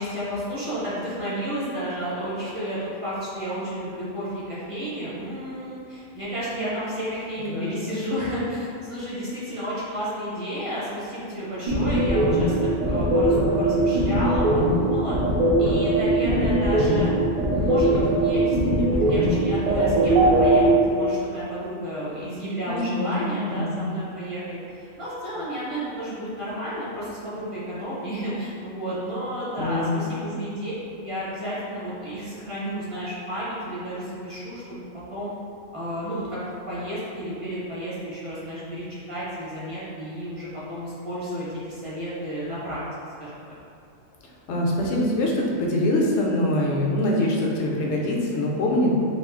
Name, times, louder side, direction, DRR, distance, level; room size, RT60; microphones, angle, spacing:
voice 1, 0.0-12.6 12.8-15.1 15.6-17.1 17.5-34.8 35.1-35.3 35.7-36.4 36.7-42.8 43.2-43.6, equal, 30° right, -10 dB, 0.8 m, -32 dB
voice 2, 7.5-8.0 22.7-23.8 29.6-30.1 44.5-48.9, left 1 dB, 70° left, -2 dB, 0.9 m, -24 dB
sound 1, 11.7-20.7, right 2 dB, 60° right, 0.4 m, -20 dB
2.6 x 2.3 x 3.6 m, 2.6 s
omnidirectional pair, 1.3 m